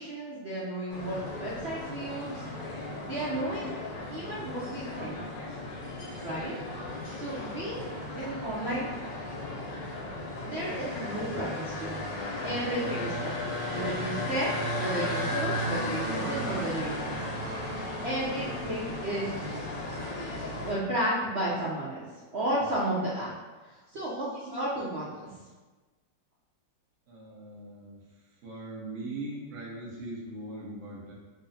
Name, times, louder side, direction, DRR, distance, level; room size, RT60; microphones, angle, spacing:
voice 1, 0.0-2.5 3.0-3.8 4.1-5.2 6.2-6.5 7.1-7.9 8.1-8.9 10.4-12.0 12.4-13.3 13.7-17.1 17.7-19.2 20.6-22.1 22.3-23.3 23.6-25.4, right 1 dB, 80° right, -8 dB, 0.6 m, -33 dB
sound 1, 0.9-20.7, left 1 dB, 75° left, 1.5 m, -35 dB
voice 2, 27.1-28.0 28.4-31.1, right 2 dB, 55° right, -5 dB, 1.1 m, -40 dB
3.9 x 2.0 x 3.9 m, 1.3 s
omnidirectional pair, 1.9 m